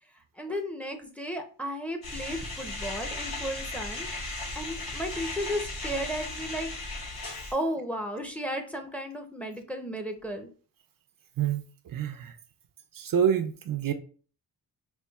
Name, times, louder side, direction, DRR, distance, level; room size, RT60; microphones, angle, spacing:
voice 1, 0.4-4.1 4.5-6.7 7.5-10.5, equal, 5° left, 0.6 m, -34 dB
sound 1, 2.0-7.5, left 2 dB, 85° left, 1.9 m, -36 dB
voice 2, 11.4-12.4 12.9-13.9, right 8 dB, 65° right, 0.5 m, -27 dB
5.4 x 2.4 x 2.3 m
cardioid pair, 85°, 37 cm